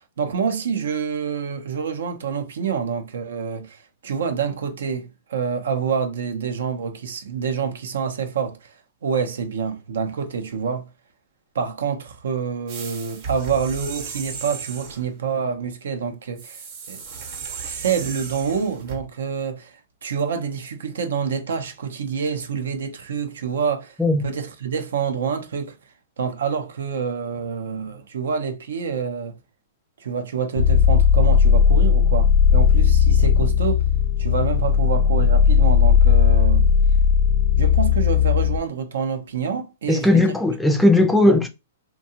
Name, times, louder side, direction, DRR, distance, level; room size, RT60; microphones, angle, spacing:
voice 1, 0.0-8.7 9.0-10.9 11.5-16.6 16.9-17.0 17.6-25.8 26.2-29.4 30.0-33.9 34.2-36.7 37.6-40.4 41.0-41.4, right 6 dB, 80° right, 0.6 m, -27 dB
sound 1, 12.7-15.1 16.4-19.0, right 5 dB, 45° right, 0.8 m, -35 dB
sound 2, 30.6-38.6, left 7 dB, 75° left, 0.6 m, -16 dB
voice 2, 39.9-41.5, left 2 dB, 5° left, 0.4 m, -17 dB
2.7 x 2.2 x 2.7 m
hypercardioid pair, 140°, 0 cm